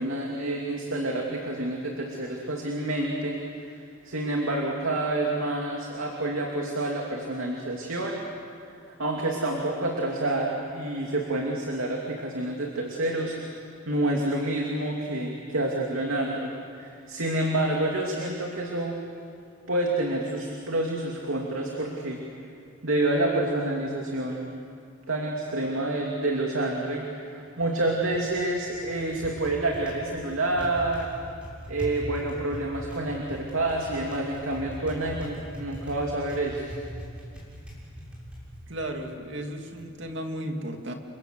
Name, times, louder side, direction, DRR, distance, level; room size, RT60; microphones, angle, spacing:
voice 1, 0.0-3.8 4.0-8.2 8.9-13.4 13.9-19.0 19.7-22.2 22.8-24.6 25.1-31.1 31.7-36.7, right 2 dB, 80° right, -1 dB, 2.8 m, -28 dB
Typing, 27.5-39.9, equal, 5° right, 7.1 m, -42 dB
voice 2, 38.7-40.9, right 1 dB, 60° right, 3 dB, 2.6 m, -34 dB
30.0 x 24.5 x 7.8 m, 2.4 s
head